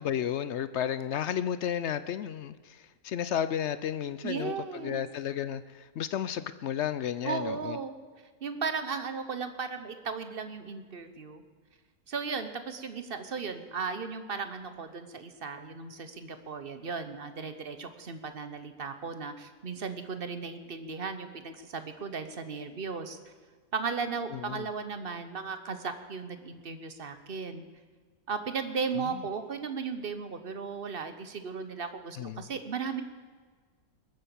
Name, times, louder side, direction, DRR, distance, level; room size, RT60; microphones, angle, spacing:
voice 1, 0.0-7.8 24.3-24.7 29.0-29.2 32.2-32.4, left 9 dB, 65° left, 14 dB, 0.7 m, -33 dB
voice 2, 4.2-5.0 7.2-7.9 8.4-11.4 12.1-23.2 23.7-27.6 28.3-33.0, right 5 dB, 40° right, 9 dB, 1.1 m, -36 dB
21.0 x 9.1 x 7.0 m, 1.5 s
omnidirectional pair, 1.7 m